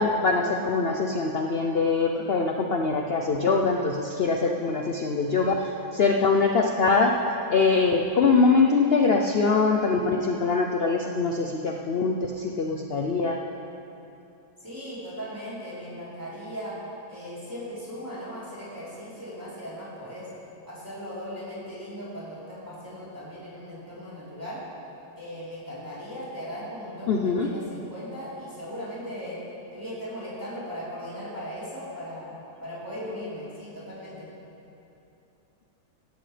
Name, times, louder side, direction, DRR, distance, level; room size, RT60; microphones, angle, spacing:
voice 1, 0.0-7.1 7.5-13.4 27.1-27.5, left 4 dB, 50° left, 2 dB, 0.8 m, -23 dB
voice 2, 14.6-16.8 17.1-20.3 20.7-24.6 25.2-29.4 29.7-34.3, equal, 10° right, -10 dB, 3.7 m, -38 dB
16.5 x 15.5 x 3.3 m, 2.8 s
omnidirectional pair, 1.6 m